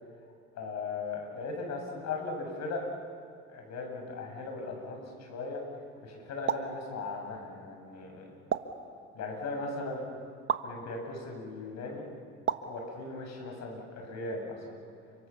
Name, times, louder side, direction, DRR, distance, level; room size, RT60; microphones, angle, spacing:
voice 1, 0.6-2.8 3.5-5.6 6.0-8.3 9.1-10.0 10.6-12.1 12.7-14.8, left 3 dB, 60° left, 2 dB, 7.1 m, -38 dB
sound 1, 6.5-6.8 8.5-8.8 10.5-10.7 12.5-12.8, right 8 dB, 40° right, 1.5 m, -31 dB
29.5 x 25.5 x 7.1 m, 2.2 s
supercardioid pair, 75°, 31 cm